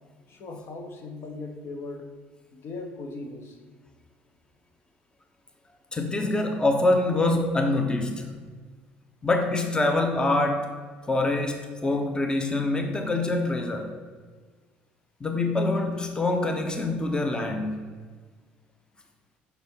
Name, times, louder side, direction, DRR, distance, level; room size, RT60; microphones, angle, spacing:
voice 1, 0.3-2.1 2.5-3.6, left 3 dB, 55° left, 4 dB, 1.2 m, -38 dB
voice 2, 5.9-8.3 9.2-10.7 11.1-13.9 15.2-17.8, left 2 dB, 15° left, 4 dB, 0.8 m, -25 dB
5.8 x 4.2 x 5.4 m, 1.5 s
hypercardioid pair, 70°, 5 cm